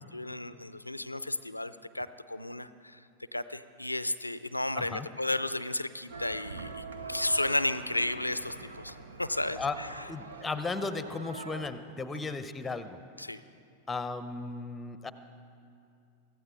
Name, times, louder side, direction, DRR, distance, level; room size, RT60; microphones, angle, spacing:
voice 1, 0.0-3.0 3.3-9.9 13.2-13.4, left 1 dB, 85° left, 14 dB, 0.4 m, -33 dB
voice 2, 4.8-5.1 9.6-9.8 10.1-13.0 13.9-15.1, left 3 dB, 10° left, 12 dB, 0.8 m, -35 dB
sound 1, 6.1-11.7, right 3 dB, 70° right, 0.9 m, -44 dB
24.0 x 15.0 x 3.8 m, 2.5 s
figure-of-eight pair, 90°, 0 cm